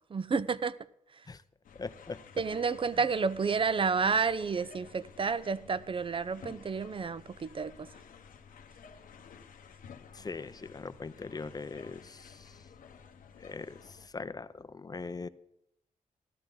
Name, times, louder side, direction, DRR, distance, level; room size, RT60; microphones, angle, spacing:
voice 1, 0.1-0.7 2.4-7.9, right 5 dB, 40° right, 17 dB, 0.5 m, -30 dB
sound 1, 1.6-14.1, left 6 dB, 80° left, 1.0 m, -53 dB
voice 2, 1.8-2.2 10.1-12.6 13.4-15.3, left 4 dB, 25° left, 14 dB, 0.5 m, -41 dB
13.5 x 11.5 x 3.9 m, 0.76 s
cardioid pair, 75°, 14 cm